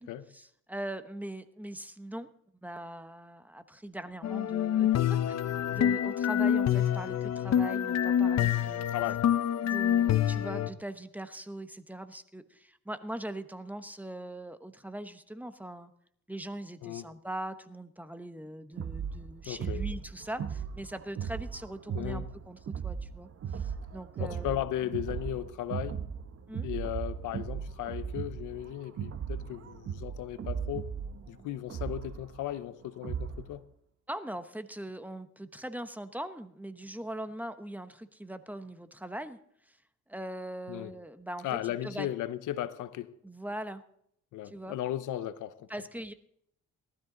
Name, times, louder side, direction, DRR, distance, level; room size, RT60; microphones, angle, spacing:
voice 1, 0.0-2.3 2.6-5.3 5.7-8.9 9.6-15.9 16.3-24.7 26.5-26.7 34.1-39.4 39.7-39.8 40.1-42.1 43.2-43.8 44.4-44.8 45.7-46.1, right 1 dB, 5° right, 1.0 m, -41 dB
sound 1, 4.2-10.7, left 10 dB, 60° left, 0.9 m, -27 dB
voice 2, 8.9-9.3 16.8-17.1 19.4-19.8 21.9-22.2 24.2-26.0 26.6-30.9 31.3-33.6 40.7-40.9 41.4-43.1 44.3-45.7, left 13 dB, 85° left, 0.9 m, -36 dB
sound 2, 18.8-33.5, right 7 dB, 50° right, 1.0 m, -37 dB
18.5 x 12.5 x 3.9 m
cardioid pair, 90°, 30 cm